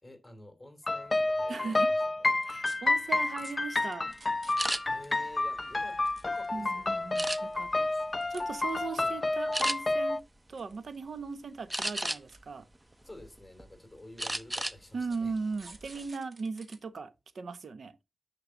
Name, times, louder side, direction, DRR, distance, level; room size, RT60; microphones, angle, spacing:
voice 1, 0.0-2.5 4.8-7.1 9.0-9.2 13.0-15.4, left 1 dB, 10° left, 3.5 m, -51 dB
sound 1, 0.9-10.2, left 2 dB, 35° left, 0.4 m, -30 dB
sound 2, 1.5-1.8 2.4-2.8 3.4-4.8 5.0-5.1 5.8-6.8 7.3-7.7 8.2-8.4 8.7-9.4 10.2-11.0 11.3-11.4 11.8-11.9 12.3-12.4 13.2-13.3 14.0-14.1 15.0-16.8 17.2-17.3, right 3 dB, 50° right, 2.0 m, -52 dB
voice 2, 1.5-1.9 2.5-4.1 6.5-7.9 8.3-10.2 10.5-12.7 14.9-18.0, right 4 dB, 75° right, 1.0 m, -38 dB
sound 3, 4.6-4.8 5.4-6.4 7.2-7.7 8.3-8.5 8.9-9.0 9.5-9.8 11.7-12.4 12.9-13.7 14.2-14.8 15.1-15.3 15.7-16.1, right 1 dB, 15° right, 0.8 m, -34 dB
9.8 x 5.8 x 3.8 m
wide cardioid pair, 90°, 0 cm